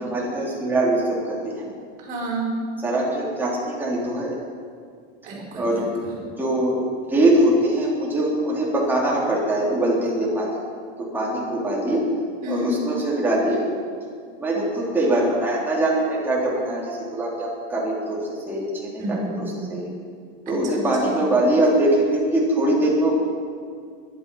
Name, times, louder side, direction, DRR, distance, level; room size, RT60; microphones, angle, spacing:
voice 1, 0.0-1.7 2.8-4.4 5.6-5.9 6.4-6.8 7.1-10.5 11.0-12.0 12.5-13.6 14.4-19.3 19.7-19.9 20.5-23.3, right 1 dB, 5° right, -5 dB, 3.4 m, -22 dB
voice 2, 2.0-2.5 5.2-6.2 12.4-12.7 19.0-19.5 20.5-21.3, right 1 dB, 25° right, -2 dB, 4.8 m, -31 dB
21.0 x 11.5 x 5.5 m, 2.2 s
supercardioid pair, 175°, 29 cm